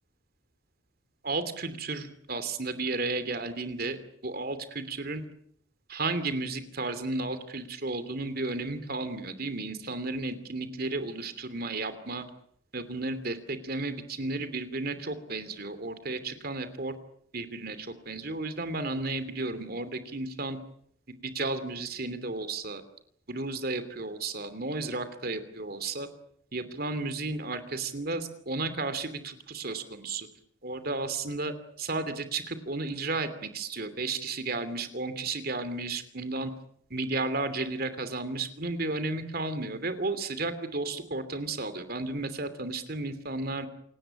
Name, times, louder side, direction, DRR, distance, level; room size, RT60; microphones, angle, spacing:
voice 1, 1.2-4.0 4.2-5.2 5.9-12.2 12.7-16.9 17.3-20.6 21.2-22.8 23.3-26.1 26.5-30.3 30.6-36.5 36.9-43.7, right 3 dB, 50° right, 11 dB, 2.9 m, -33 dB
28.5 x 18.5 x 8.9 m, 0.68 s
head